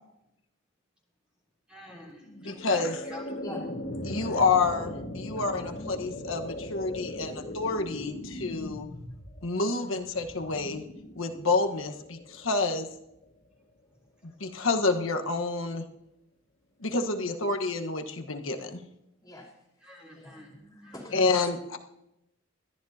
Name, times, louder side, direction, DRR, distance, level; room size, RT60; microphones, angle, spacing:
voice 1, 1.7-3.2 19.8-20.5 20.8-21.0, left 1 dB, 5° right, -5 dB, 3.3 m, -46 dB
sound 1, 2.2-13.4, left 1 dB, 50° left, 2.0 m, -39 dB
voice 2, 2.4-3.0 4.0-8.9 9.4-10.8 11.2-12.9 14.4-15.8 16.8-18.8 21.1-21.8, left 3 dB, 75° left, 4 dB, 1.3 m, -28 dB
voice 3, 3.3-3.6 4.0-4.3 5.3-5.9 7.0-7.1 19.2-19.5 20.1-21.4, left 1 dB, 20° left, -4 dB, 3.6 m, -45 dB
21.5 x 13.5 x 2.9 m, 0.86 s
head